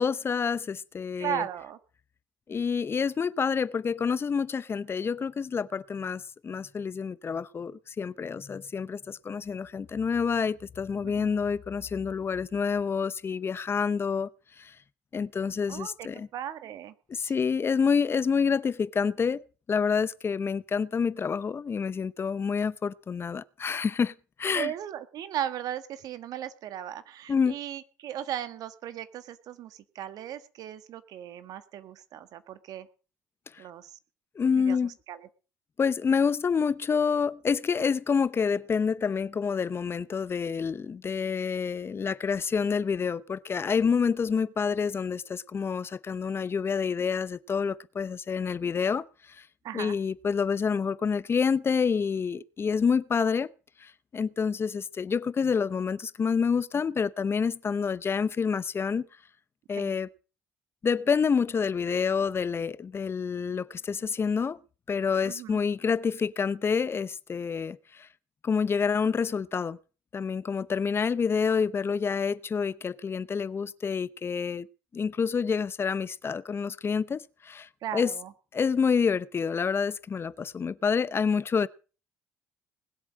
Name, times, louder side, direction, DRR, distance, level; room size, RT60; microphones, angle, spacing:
voice 1, 0.0-1.4 2.5-14.3 14.6-14.7 15.1-16.3 17.1-19.4 19.7-24.7 27.3-27.6 33.5-33.6 34.4-34.9 35.8-49.5 49.7-53.5 53.8-59.1 59.7-60.1 60.8-64.6 64.9-68.1 68.4-69.8 70.1-74.7 74.9-78.1 78.5-81.7, left 6 dB, 35° left, 0.8 m, -28 dB
voice 2, 1.2-1.8 11.0-11.3 15.7-16.1 16.3-17.3 24.5-32.9 33.6-33.9 34.5-35.2 49.6-49.9 59.7-59.9 65.2-65.6 77.8-78.3, right 10 dB, 65° right, 1.5 m, -37 dB
20.0 x 8.0 x 6.3 m
hypercardioid pair, 65°, 7 cm